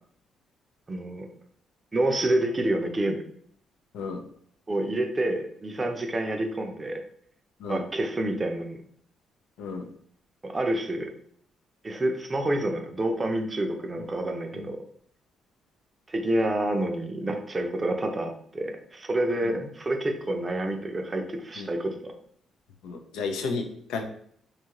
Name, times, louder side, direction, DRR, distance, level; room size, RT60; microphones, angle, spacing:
voice 1, 0.9-1.3 1.9-3.2 4.7-7.0 7.7-8.8 10.4-11.1 11.8-14.8 16.1-22.1, right 1 dB, 25° right, 4 dB, 0.5 m, -28 dB
voice 2, 22.8-24.0, left 4 dB, 90° left, 4 dB, 0.4 m, -33 dB
2.6 x 2.3 x 2.9 m, 0.63 s
cardioid pair, 90°, 0 cm